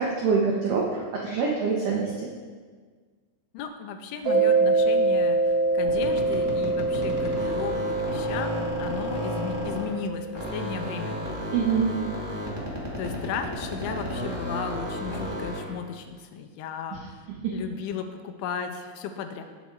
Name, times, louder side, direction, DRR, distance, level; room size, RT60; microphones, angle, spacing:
voice 1, 0.0-2.3 11.5-11.9 17.4-17.6, right 5 dB, 85° right, -2 dB, 1.8 m, -25 dB
voice 2, 3.5-11.2 13.0-17.3 17.5-19.4, left 7 dB, 80° left, 6 dB, 3.2 m, -35 dB
Mallet percussion, 4.2-10.6, right 3 dB, 50° right, 5.6 m, -25 dB
sound 1, 5.8-10.0 10.3-15.7, equal, 30° right, 0.5 m, -33 dB
18.5 x 7.2 x 4.6 m, 1.6 s
omnidirectional pair, 5.7 m